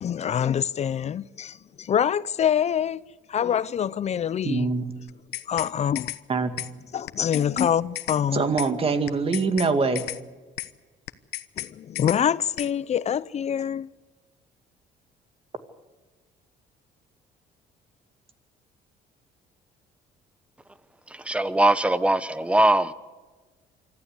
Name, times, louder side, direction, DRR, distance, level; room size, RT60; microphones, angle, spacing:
voice 1, 0.0-3.0 3.3-4.7 5.5-6.1 6.9-8.4 11.6-13.9, left 9 dB, 40° left, 0.5 m, -25 dB
voice 2, 4.4-4.9 6.3-6.5 8.3-10.1, right 4 dB, 35° right, 2.3 m, -23 dB
sound 1, 5.1-5.7 6.0-6.2 6.6-6.7 7.1-7.7 8.0-8.2 8.6-8.7 9.1-9.7 10.0-10.2 10.6-10.7 11.1-11.7 12.0-12.2 12.6-12.7, left 15 dB, 80° left, 1.0 m, -33 dB
voice 3, 21.2-22.9, right 1 dB, 5° right, 1.0 m, -21 dB
25.5 x 14.0 x 8.3 m
cardioid pair, 110°, 17 cm